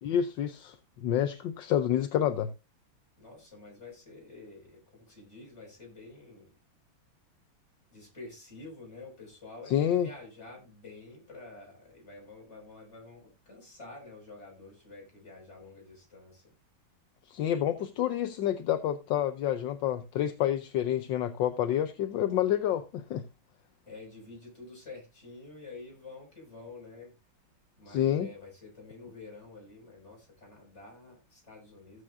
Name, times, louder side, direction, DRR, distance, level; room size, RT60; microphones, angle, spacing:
voice 1, 0.0-2.5 9.7-10.1 17.3-23.2 27.9-28.3, left 10 dB, 70° left, 1.4 m, -28 dB
voice 2, 3.2-6.5 7.9-16.5 23.9-27.1 27.8-32.0, left 3 dB, 35° left, 6.3 m, -49 dB
16.0 x 7.9 x 2.6 m
omnidirectional pair, 2.2 m